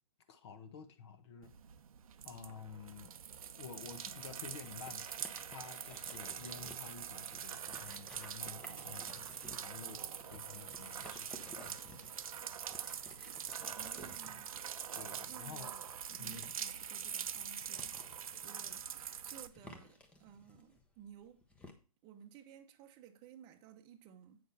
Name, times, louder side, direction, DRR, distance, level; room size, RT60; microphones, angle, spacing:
voice 1, 0.3-1.5 2.2-3.2 3.6-11.8 14.9-15.7 16.2-16.5, left 6 dB, 45° left, 1.2 m, -51 dB
sound 1, 1.4-19.5, right 8 dB, 70° right, 0.8 m, -44 dB
sound 2, 3.6-21.7, left 1 dB, 5° left, 0.8 m, -57 dB
voice 2, 13.7-14.5 15.3-17.9 18.4-18.9 19.2-21.4 22.0-24.4, right 9 dB, 25° right, 0.8 m, -56 dB
8.4 x 6.4 x 4.2 m
hypercardioid pair, 145°, 19 cm